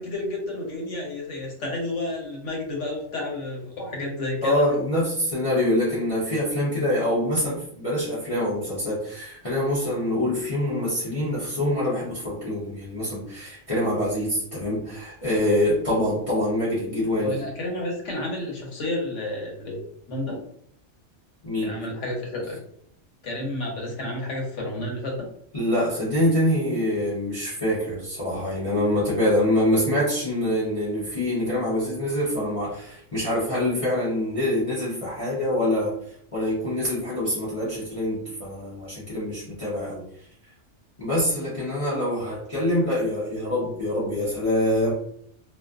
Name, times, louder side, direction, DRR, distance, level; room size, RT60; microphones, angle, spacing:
voice 1, 0.0-4.6 17.2-19.8 20.1-20.4 21.6-22.6 23.2-25.3, left 1 dB, 90° left, -1 dB, 1.2 m, -31 dB
voice 2, 4.4-17.4 21.4-21.8 25.5-40.1 41.0-44.9, left 1 dB, 35° left, -9 dB, 0.7 m, -25 dB
2.5 x 2.4 x 2.3 m, 0.66 s
omnidirectional pair, 1.2 m